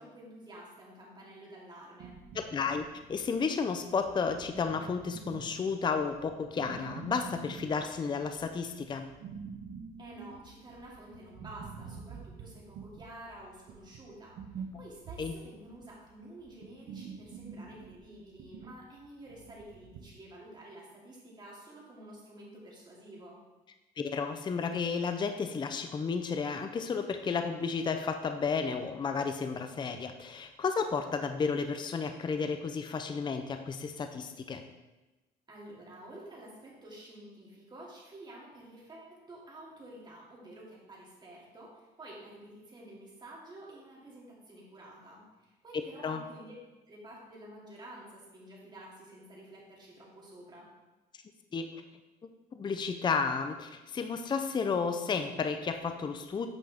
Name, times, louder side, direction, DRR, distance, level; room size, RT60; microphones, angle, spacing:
voice 1, 0.0-2.2 10.0-23.4 35.5-46.5 46.9-50.7, right 1 dB, 25° right, -4 dB, 2.7 m, -50 dB
sound 1, 2.0-20.2, right 5 dB, 70° right, 0.9 m, -47 dB
voice 2, 2.3-9.1 15.2-15.3 24.0-34.6 45.7-46.2 51.5-51.7 52.5-56.5, left 5 dB, 25° left, 7 dB, 0.5 m, -32 dB
9.1 x 5.4 x 3.6 m, 1.1 s
cardioid pair, 110°, 17 cm